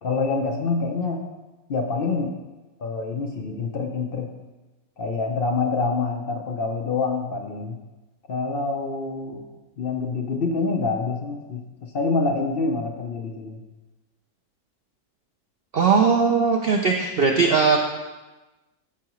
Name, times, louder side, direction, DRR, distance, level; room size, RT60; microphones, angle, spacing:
voice 1, 0.0-1.2 1.7-2.3 2.8-4.3 5.0-7.8 8.3-9.4 9.8-13.6, left 4 dB, 55° left, 3 dB, 0.6 m, -26 dB
voice 2, 15.7-17.8, right 5 dB, 65° right, 2 dB, 0.6 m, -19 dB
13.0 x 4.7 x 3.0 m, 1.1 s
omnidirectional pair, 1.6 m